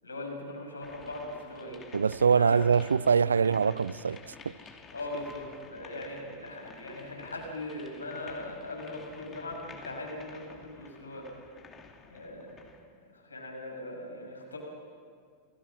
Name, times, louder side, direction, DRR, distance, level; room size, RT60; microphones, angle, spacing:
voice 1, 0.0-1.8 2.3-2.8 3.6-3.7 4.9-11.5 12.1-12.7 13.1-14.6, left 2 dB, 75° left, 6.1 m, -40 dB
sound 1, 0.8-12.9, left 5 dB, 20° left, 2.8 m, -52 dB
voice 2, 1.9-4.5, right 6 dB, 70° right, 0.5 m, -24 dB
29.0 x 19.0 x 6.4 m
figure-of-eight pair, 90°, 0 cm